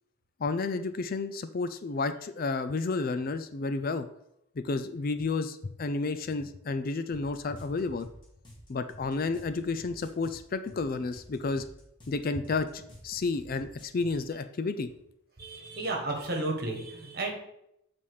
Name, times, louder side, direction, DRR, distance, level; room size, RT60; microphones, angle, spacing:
voice 1, 0.4-4.1 4.6-8.1 8.7-11.6 12.1-14.9, left 3 dB, 40° left, 11 dB, 0.4 m, -31 dB
sound 1, 7.1-14.2, equal, 20° left, 1.9 m, -51 dB
voice 2, 15.4-17.3, right 2 dB, 45° right, 2 dB, 1.4 m, -33 dB
7.4 x 4.2 x 4.8 m, 0.78 s
head